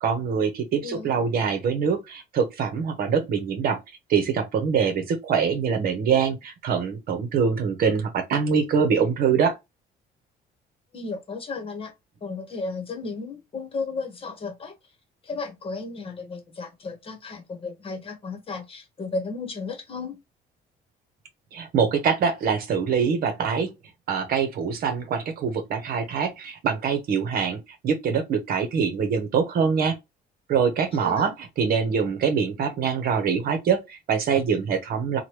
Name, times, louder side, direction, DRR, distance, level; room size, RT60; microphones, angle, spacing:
voice 1, 0.0-3.8 4.1-9.5 21.5-23.7 24.1-30.0 30.5-35.2, right 6 dB, 60° right, 0.9 m, -24 dB
voice 2, 0.8-1.1 10.9-11.9 12.2-14.7 15.2-20.2 31.0-31.3, left 3 dB, 35° left, 1.0 m, -34 dB
2.9 x 2.2 x 3.2 m
cardioid pair, 110°, 17 cm